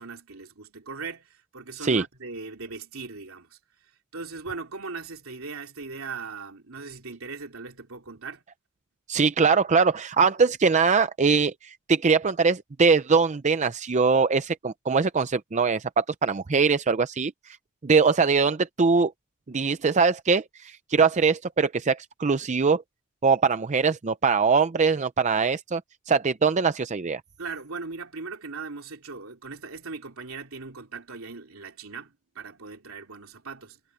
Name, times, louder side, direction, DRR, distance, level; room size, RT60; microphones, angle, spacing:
voice 1, 0.0-3.6 4.1-8.4 27.4-33.8, right 4 dB, 75° right, 3.2 m, -39 dB
voice 2, 9.1-17.3 17.8-19.1 19.5-22.8 23.2-25.8 26.1-27.2, right 5 dB, 35° right, 0.5 m, -22 dB
head